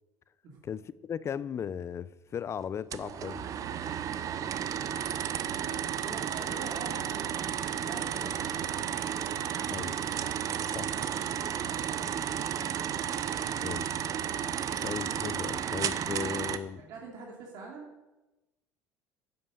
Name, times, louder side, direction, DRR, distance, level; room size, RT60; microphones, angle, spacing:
voice 1, 0.7-3.5 9.7-9.9 10.7-10.9 13.6-13.8 14.8-16.8, left 8 dB, 35° left, 0.6 m, -36 dB
sound 1, 2.9-16.6, right 9 dB, 45° right, 0.8 m, -33 dB
voice 2, 5.5-7.2 7.8-8.5 10.5-12.8 16.8-17.9, right 4 dB, 60° right, 2.8 m, -45 dB
10.0 x 8.0 x 7.8 m
supercardioid pair, 90°, 8 cm